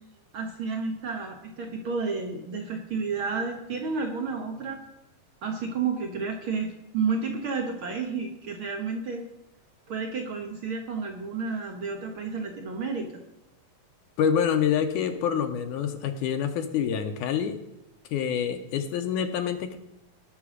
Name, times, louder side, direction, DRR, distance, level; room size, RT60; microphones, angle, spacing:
voice 1, 0.3-4.8 5.4-9.2 9.9-13.2, right 5 dB, 70° right, 3 dB, 1.2 m, -31 dB
voice 2, 14.2-17.6 18.1-19.8, left 8 dB, 75° left, 6 dB, 2.1 m, -26 dB
18.5 x 6.1 x 5.0 m, 0.92 s
omnidirectional pair, 3.9 m